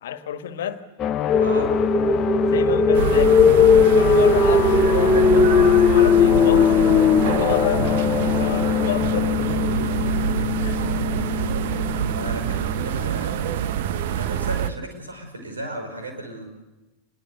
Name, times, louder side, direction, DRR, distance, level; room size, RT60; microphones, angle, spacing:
voice 1, 0.0-0.8 2.5-9.5 10.6-10.8 12.0-12.2, left 9 dB, 60° left, 10 dB, 1.7 m, -31 dB
sound 1, 1.0-14.1, left 10 dB, 30° left, 0.9 m, -26 dB
sound 2, 1.3-9.5, left 5 dB, 15° left, 1.2 m, -18 dB
voice 2, 1.4-1.7 12.1-13.4 14.2-16.5, right 1 dB, 75° right, 5 dB, 5.6 m, -34 dB
sound 3, 2.9-14.7, right 9 dB, 50° right, 1.1 m, -26 dB
26.0 x 22.0 x 6.9 m, 1.1 s
figure-of-eight pair, 90°, 0 cm